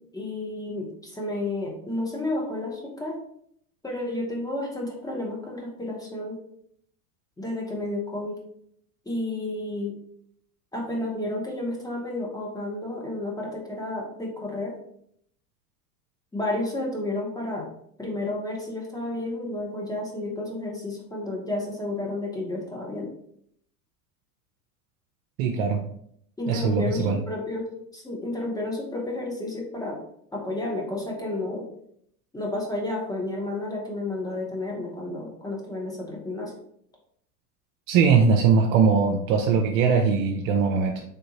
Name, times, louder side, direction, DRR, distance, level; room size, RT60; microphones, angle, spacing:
voice 1, 0.1-3.2 3.8-6.4 7.4-8.4 9.1-9.9 10.7-14.7 16.3-17.6 18.0-23.1 26.4-27.7 27.9-30.0 30.3-31.7 32.3-36.6, left 2 dB, 10° left, -1 dB, 0.7 m, -31 dB
voice 2, 25.4-25.8 26.5-27.2 37.9-41.0, right 5 dB, 55° right, 1 dB, 0.6 m, -21 dB
3.3 x 2.7 x 2.8 m, 0.70 s
hypercardioid pair, 95°, 46 cm